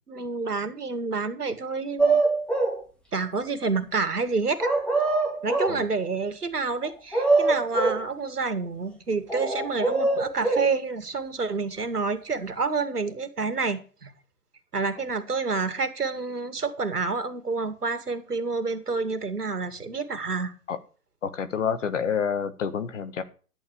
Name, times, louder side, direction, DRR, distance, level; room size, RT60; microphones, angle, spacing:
voice 1, 0.1-2.2 3.1-4.7 5.4-14.1 14.7-20.5, right 4 dB, 80° right, 10 dB, 2.3 m, -28 dB
sound 1, 2.0-2.8 4.6-5.8 6.8-8.0 9.3-10.7, right 3 dB, ahead, 1.8 m, -23 dB
voice 2, 21.2-23.2, left 7 dB, 50° left, 12 dB, 1.6 m, -28 dB
11.0 x 9.0 x 4.8 m, 0.38 s
figure-of-eight pair, 135°, 46 cm